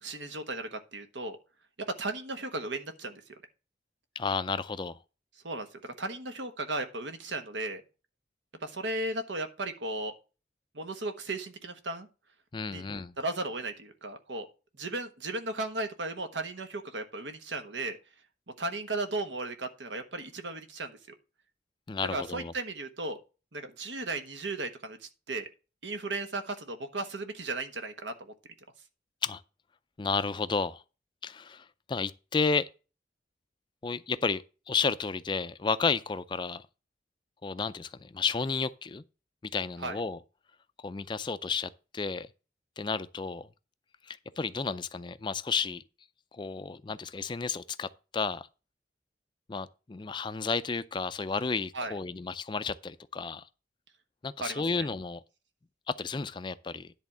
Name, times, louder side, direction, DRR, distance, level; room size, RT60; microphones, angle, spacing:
voice 1, 0.0-1.4 2.0-3.2 5.4-7.8 8.6-10.1 10.7-12.1 12.7-12.8 13.2-14.5 14.8-18.0 18.6-21.0 22.0-23.2 23.5-25.5 25.8-28.3 39.8-40.0 51.7-51.9 54.4-54.9, right 2 dB, 85° right, 1.2 m, -35 dB
voice 2, 4.2-5.0 12.5-13.1 21.9-22.5 29.2-29.4 30.0-30.8 31.2-32.7 33.8-36.6 37.4-39.0 39.5-40.2 40.8-42.3 42.8-43.5 44.1-45.8 46.3-48.5 49.5-53.4 54.2-55.2 55.9-56.9, left 4 dB, 25° left, 0.4 m, -32 dB
10.5 x 3.5 x 7.1 m
head